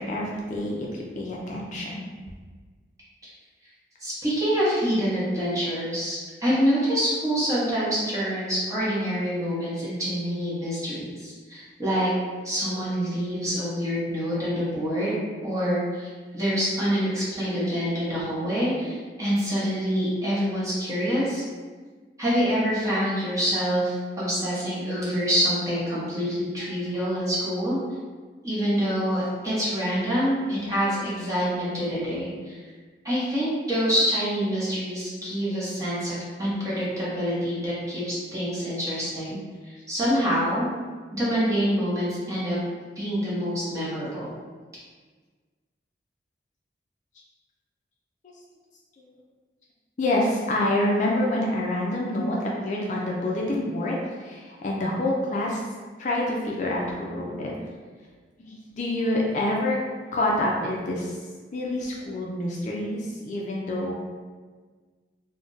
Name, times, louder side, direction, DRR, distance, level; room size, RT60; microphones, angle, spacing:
voice 1, 0.0-2.1 43.8-43.9 49.0-49.1 50.0-55.6 56.0-57.5 58.4-59.8 60.1-61.2 61.5-63.9, left 1 dB, 40° left, -3 dB, 0.3 m, -27 dB
voice 2, 4.0-12.1 12.4-21.4 22.2-27.8 28.4-32.6 33.0-39.4 39.6-40.7 41.1-42.6 43.0-44.3, equal, 20° right, -9 dB, 0.9 m, -26 dB
2.4 x 2.1 x 3.8 m, 1.5 s
head